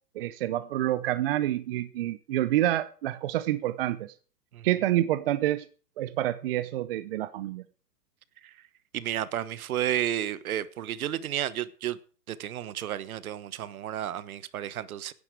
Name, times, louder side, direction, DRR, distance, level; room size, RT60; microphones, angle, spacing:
voice 1, 0.1-4.1 4.6-5.7 6.0-7.6, right 14 dB, 40° right, 0.7 m, -28 dB
voice 2, 8.9-12.0 12.3-15.1, right 11 dB, 60° right, 1.2 m, -32 dB
16.5 x 10.0 x 4.8 m
hypercardioid pair, 145°, 48 cm